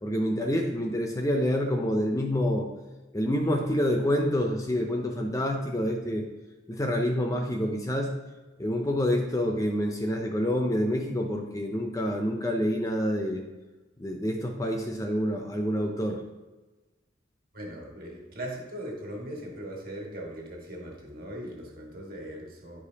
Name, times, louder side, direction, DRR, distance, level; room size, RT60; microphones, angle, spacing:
voice 1, 0.0-2.7 3.1-6.3 6.7-8.1 8.6-13.4 14.0-16.2, equal, 15° left, 3 dB, 0.5 m, -27 dB
voice 2, 17.5-22.8, right 1 dB, 45° right, -1 dB, 1.7 m, -39 dB
10.5 x 4.9 x 2.8 m, 1.2 s
head